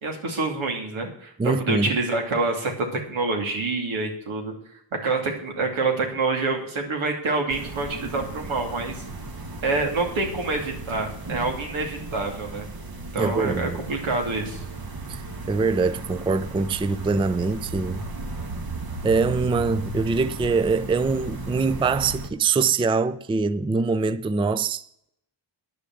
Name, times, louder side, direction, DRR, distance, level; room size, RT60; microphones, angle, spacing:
voice 1, 0.0-4.5 5.0-8.9 9.6-12.7 13.1-14.6, right 3 dB, 85° right, 2.8 m, -27 dB
voice 2, 1.4-1.9 13.2-13.8 15.1-18.0 19.0-25.1, right 4 dB, 10° right, 0.4 m, -24 dB
sound 1, 7.5-22.3, right 2 dB, 50° right, 1.6 m, -35 dB
10.0 x 6.7 x 7.7 m
cardioid pair, 90°, 47 cm